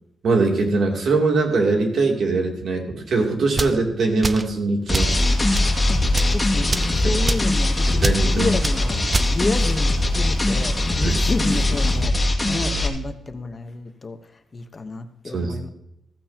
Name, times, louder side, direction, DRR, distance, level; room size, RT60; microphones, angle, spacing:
voice 1, 0.2-5.3 7.0-7.1 7.9-8.5 11.0-11.2 15.3-15.6, right 3 dB, 65° right, 1 dB, 2.8 m, -21 dB
sound 1, 3.5-3.8 4.2-4.5 4.9-5.2 5.5-5.7 6.1-6.4 6.7-6.9 7.3-7.5 8.0-8.2 8.6-8.8 9.1-9.3, right 3 dB, 30° right, 0.6 m, -25 dB
sound 2, 4.9-12.9, left 1 dB, 15° left, 2.2 m, -21 dB
sound 3, 5.2-12.1, left 4 dB, 75° left, 1.2 m, -35 dB
voice 2, 6.3-15.7, left 3 dB, 30° left, 7 dB, 1.0 m, -30 dB
15.5 x 15.0 x 2.9 m, 0.83 s
wide cardioid pair, 130°, 0 cm